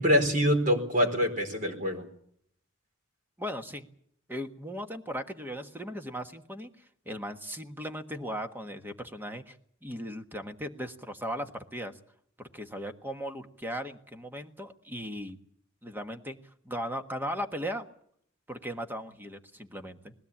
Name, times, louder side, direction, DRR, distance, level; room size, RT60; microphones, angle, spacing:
voice 1, 0.0-2.1, equal, 40° right, 3 dB, 4.7 m, -25 dB
voice 2, 3.4-3.9 4.3-6.7 7.0-11.9 12.4-15.4 15.8-16.4 16.6-17.9 18.5-20.1, equal, 10° right, 6 dB, 1.4 m, -37 dB
21.0 x 16.5 x 8.6 m, 0.66 s
head